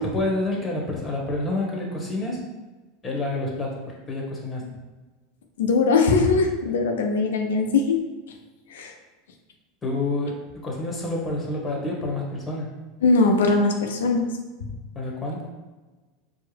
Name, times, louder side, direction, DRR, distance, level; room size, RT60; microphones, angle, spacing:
voice 1, 0.0-2.4 3.0-4.6 9.8-12.7 14.9-15.5, left 2 dB, 25° left, -2 dB, 1.1 m, -28 dB
voice 2, 5.6-8.0 8.7-8.9 13.0-14.3, left 3 dB, 80° left, 3 dB, 0.5 m, -20 dB
4.6 x 2.0 x 3.3 m, 1.2 s
hypercardioid pair, 90°, 0 cm